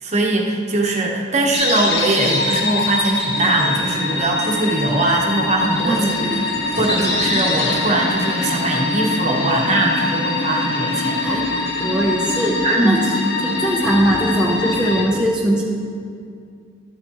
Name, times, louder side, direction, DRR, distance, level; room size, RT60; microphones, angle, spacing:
voice 1, 0.0-6.0 6.8-11.4 12.6-13.0, right 2 dB, 35° right, 0 dB, 1.1 m, -20 dB
sound 1, 1.5-15.1, left 2 dB, 55° left, 1.2 m, -23 dB
voice 2, 5.9-6.5 6.9-7.1 11.2-13.1 13.4-15.6, right 1 dB, 5° right, -4 dB, 0.7 m, -21 dB
13.0 x 8.4 x 3.0 m, 2.4 s
head